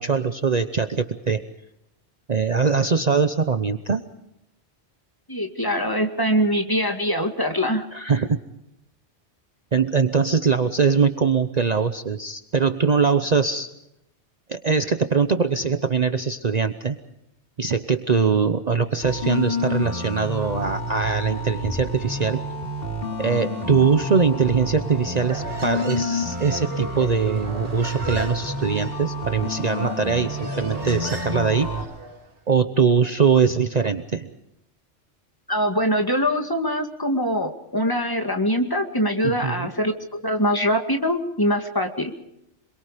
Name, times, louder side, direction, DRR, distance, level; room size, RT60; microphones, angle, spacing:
voice 1, 0.0-1.4 2.3-4.0 7.9-8.4 9.7-13.7 14.5-17.0 17.6-22.4 23.2-31.7 32.5-34.3 39.2-39.7, right 5 dB, 40° right, 9 dB, 0.9 m, -22 dB
voice 2, 5.3-7.9 35.5-42.1, equal, 20° left, 5 dB, 2.2 m, -23 dB
sound 1, 19.0-31.8, left 1 dB, 50° left, 3.9 m, -29 dB
Human voice, 25.2-32.3, right 3 dB, 85° right, 2.5 m, -37 dB
26.5 x 23.0 x 5.1 m, 0.84 s
omnidirectional pair, 1.2 m